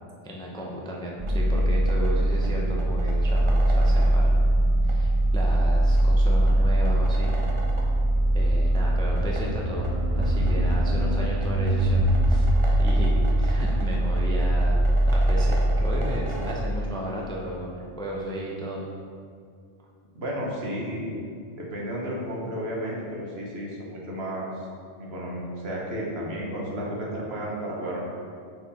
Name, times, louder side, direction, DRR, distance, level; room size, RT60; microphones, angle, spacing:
voice 1, 0.2-4.5 4.8-7.4 8.3-18.9, equal, 5° left, -3 dB, 0.4 m, -34 dB
sound 1, 1.2-16.5, right 1 dB, 30° right, 0.7 m, -22 dB
voice 2, 20.1-21.1 21.5-24.5 25.0-28.0, equal, 60° right, -3 dB, 1.4 m, -32 dB
6.1 x 4.6 x 4.1 m, 2.3 s
omnidirectional pair, 1.3 m